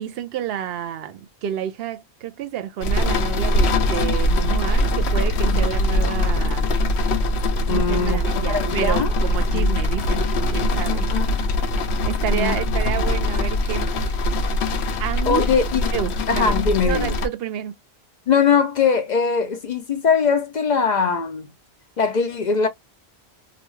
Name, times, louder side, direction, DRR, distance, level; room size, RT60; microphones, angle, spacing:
voice 1, 0.0-6.7 7.7-11.1 12.1-14.2 15.0-15.5 15.9-16.6 16.9-17.7, right 10 dB, 65° right, 0.7 m, -29 dB
sound 1, 2.8-17.3, left 1 dB, 75° left, 0.9 m, -22 dB
voice 2, 7.7-9.1 9.5-9.7 10.9-11.4 12.3-12.6 15.3-15.8 16.3-17.1 18.3-21.5 22.0-22.7, left 6 dB, 55° left, 0.5 m, -21 dB
2.5 x 2.2 x 3.0 m
omnidirectional pair, 1.1 m